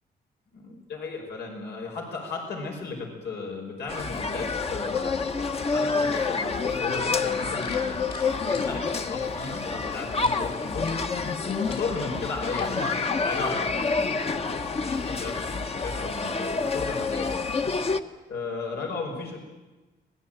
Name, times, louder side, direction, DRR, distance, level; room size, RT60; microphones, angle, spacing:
voice 1, 0.5-8.1 8.4-11.0 11.3-17.5 18.3-19.4, left 4 dB, 85° left, 1 dB, 5.2 m, -35 dB
sound 1, 3.9-18.0, left 4 dB, 35° left, 1.2 m, -28 dB
sound 2, 7.6-9.6 10.2-10.4 10.9-11.1 11.5-11.9 12.6-12.8, left 5 dB, 70° left, 6.2 m, -45 dB
25.0 x 20.0 x 9.0 m, 1.2 s
cardioid pair, 120°, 17 cm